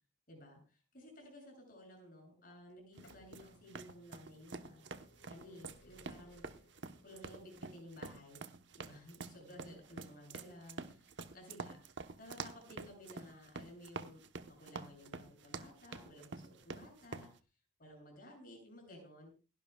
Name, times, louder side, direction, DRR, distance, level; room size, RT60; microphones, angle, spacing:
voice 1, 0.3-4.8 5.3-6.5 7.0-8.4 8.8-14.2 14.5-17.3 17.8-19.3, left 1 dB, 50° left, 1 dB, 7.5 m, -55 dB
sound 1, 2.7-14.3 15.2-15.3 16.2-16.3 16.5-16.6, left 1 dB, 80° left, 4.2 m, -68 dB
sound 2, 3.0-17.3, right 4 dB, 70° right, 1.0 m, -47 dB
28.5 x 11.5 x 2.3 m, 0.32 s
head